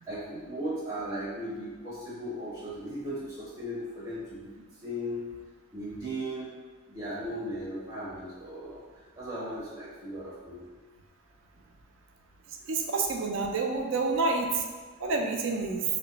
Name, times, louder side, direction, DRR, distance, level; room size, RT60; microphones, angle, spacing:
voice 1, 0.0-5.3 5.7-6.5 6.9-8.8 9.1-10.7, equal, 20° right, -10 dB, 0.6 m, -37 dB
voice 2, 12.6-14.6 15.0-15.8, right 3 dB, 60° right, 2 dB, 0.4 m, -28 dB
3.1 x 2.1 x 3.8 m, 1.4 s
head